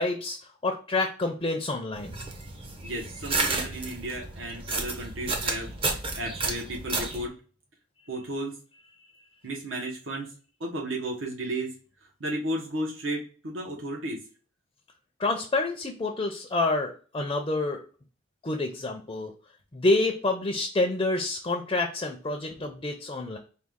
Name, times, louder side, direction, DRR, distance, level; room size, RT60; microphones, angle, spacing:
voice 1, 0.0-2.2 15.2-17.8 18.4-19.3 19.7-23.4, left 2 dB, 25° left, 3 dB, 0.5 m, -28 dB
sound 1, 1.9-7.3, right 3 dB, 25° right, 0.6 m, -32 dB
voice 2, 2.8-5.7 6.2-7.3 8.1-8.5 9.4-10.3 10.6-11.7 12.2-14.2, right 1 dB, 70° right, -1 dB, 1.1 m, -33 dB
4.6 x 2.3 x 3.6 m, 0.38 s
head